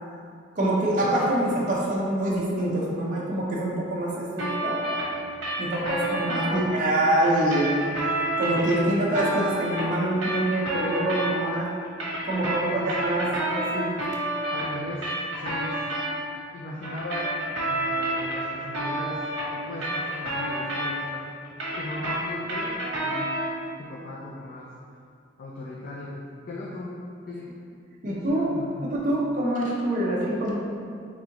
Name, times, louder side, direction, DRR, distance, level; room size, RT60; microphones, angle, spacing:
voice 1, 0.6-4.8 5.6-7.7 8.4-11.7 12.3-13.3 13.7-13.8 28.0-28.4 28.9-30.5, right 1 dB, 45° right, -5 dB, 0.6 m, -25 dB
sound 1, 4.4-6.5 7.2-11.6 11.8-16.1 16.8-21.2 21.4-23.6, right 1 dB, 70° right, 1.1 m, -29 dB
voice 2, 6.3-6.6 12.3-13.5 14.5-15.8 16.5-17.4 17.7-21.3 21.8-23.3 23.8-24.7 25.4-26.2 26.5-27.0 27.3-27.6 28.0-28.9, left 2 dB, 45° left, -4 dB, 0.4 m, -37 dB
4.0 x 3.6 x 2.9 m, 2.3 s
head